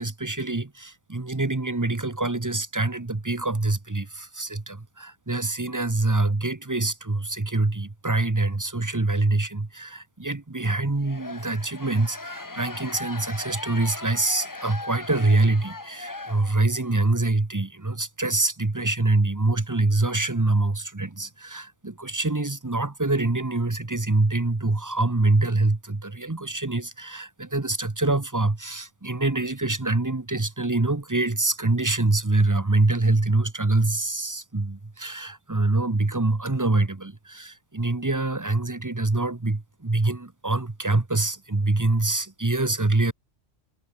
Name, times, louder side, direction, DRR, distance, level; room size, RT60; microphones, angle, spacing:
voice 1, 0.0-43.1, right 2 dB, 15° right, 0.9 m, -25 dB
sound 1, 11.0-16.9, left 2 dB, 15° left, 1.0 m, -38 dB
omnidirectional pair, 1.3 m